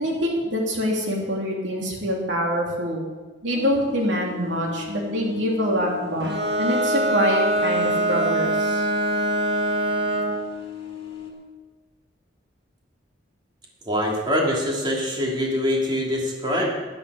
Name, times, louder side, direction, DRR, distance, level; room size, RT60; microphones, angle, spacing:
voice 1, 0.0-3.0 3.4-6.3 6.6-8.9, equal, 85° right, -1 dB, 3.0 m, -25 dB
sound 1, 3.5-11.3, left 10 dB, 30° left, 2.3 m, -37 dB
Bowed string instrument, 6.2-10.5, right 1 dB, 65° right, 1.6 m, -23 dB
voice 2, 13.8-16.7, equal, 25° right, -3 dB, 2.7 m, -24 dB
13.5 x 12.0 x 4.9 m, 1.3 s
head